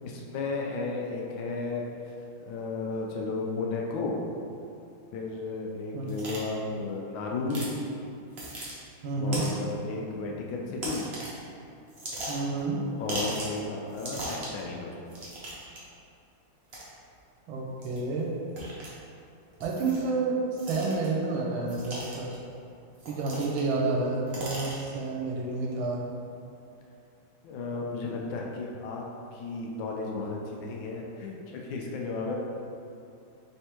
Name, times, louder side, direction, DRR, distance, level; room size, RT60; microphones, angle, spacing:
voice 1, 0.0-2.1 2.4-4.3 5.1-7.7 9.2-11.1 12.9-14.9 23.3-23.5 27.4-29.0 29.3-32.3, left 3 dB, 75° left, -1 dB, 1.2 m, -34 dB
sound 1, 6.1-6.4 7.5-7.7 8.3-8.7 9.3-9.7 10.8-11.4 11.9-12.6 13.1-13.6 13.9-14.6 15.1-15.8 16.7-16.8 17.8-18.0 18.6-18.9 19.6-20.1 20.6-21.1 21.7-22.4 23.0-23.7 24.0-24.9, right 1 dB, 50° right, 0.8 m, -37 dB
voice 2, 9.0-9.5 12.3-12.8 17.5-18.3 19.6-22.3 23.1-26.0, right 3 dB, 75° right, -2 dB, 1.4 m, -29 dB
3.5 x 3.4 x 4.3 m, 2.5 s
omnidirectional pair, 2.3 m